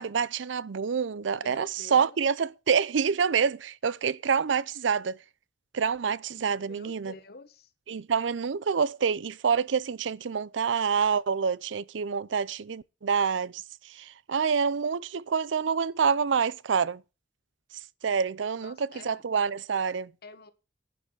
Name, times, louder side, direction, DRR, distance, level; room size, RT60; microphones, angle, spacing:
voice 1, 0.0-5.2 5.7-7.1 7.9-17.0 18.0-20.1, right 6 dB, 85° right, 0.5 m, -27 dB
voice 2, 1.3-2.2 6.6-7.7 18.6-19.2 20.2-20.5, left 3 dB, 55° left, 1.3 m, -48 dB
11.0 x 5.9 x 8.0 m
head